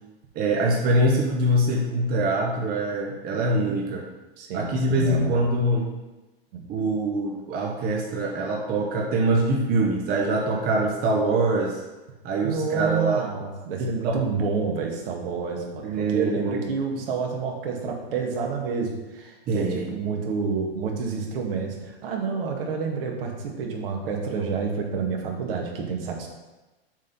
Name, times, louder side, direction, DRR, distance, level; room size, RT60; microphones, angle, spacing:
voice 1, 0.3-4.0 4.5-5.9 6.7-11.8 12.2-13.3 13.8-14.2 15.8-16.6 19.5-19.9, right 1 dB, 30° right, 0 dB, 1.0 m, -24 dB
voice 2, 4.4-5.5 6.5-6.6 12.4-26.3, right 5 dB, 65° right, 1 dB, 1.7 m, -29 dB
7.4 x 3.7 x 5.5 m, 1.1 s
hypercardioid pair, 120°, 30 cm